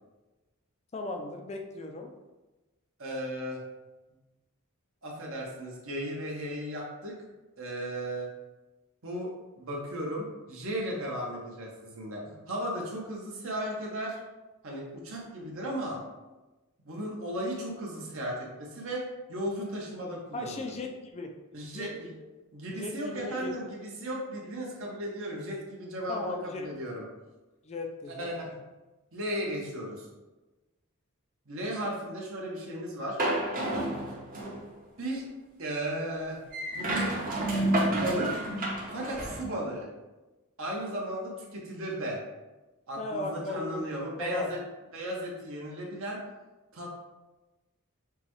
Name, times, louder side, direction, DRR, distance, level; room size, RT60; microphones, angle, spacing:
voice 1, 0.9-2.1 20.3-21.3 21.7-21.9 22.7-23.5 26.1-26.8 27.6-28.3 43.0-43.8 44.2-44.5, left 2 dB, 30° left, 3 dB, 0.4 m, -36 dB
voice 2, 3.0-3.6 5.0-7.1 7.6-8.3 9.0-14.2 14.6-16.0 16.8-20.7 21.5-22.1 22.5-27.0 28.2-28.5 29.1-30.1 31.5-33.2 35.0-35.2 35.6-36.4 36.7-37.1 38.0-38.4 38.9-39.9 40.6-42.2 42.9-44.6 44.9-46.2 46.7-46.9, right 1 dB, 60° right, -2 dB, 1.1 m, -35 dB
sound 1, 33.2-34.7 36.5-39.4, right 1 dB, 40° right, 0.9 m, -29 dB
6.6 x 2.3 x 3.1 m, 1.1 s
head